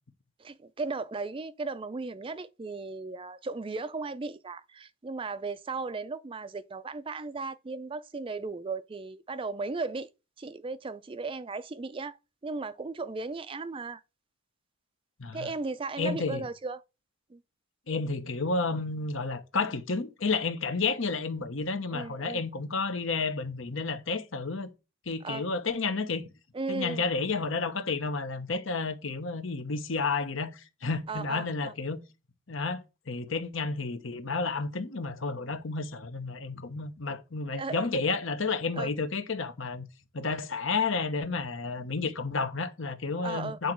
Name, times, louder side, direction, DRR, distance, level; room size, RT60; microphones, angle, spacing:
voice 1, 0.4-10.1 10.4-12.2 12.4-14.0 15.3-16.8 17.3-17.4 21.9-22.4 25.2-25.5 26.5-27.0 31.1-31.7 37.6-37.9 38.8-38.9 43.2-43.6, right 3 dB, 25° right, 0.4 m, -36 dB
voice 2, 16.0-16.4 17.9-24.7 25.1-26.2 26.7-32.0 32.5-39.9 40.1-43.7, left 4 dB, 70° left, 1.0 m, -31 dB
9.3 x 3.9 x 6.1 m
head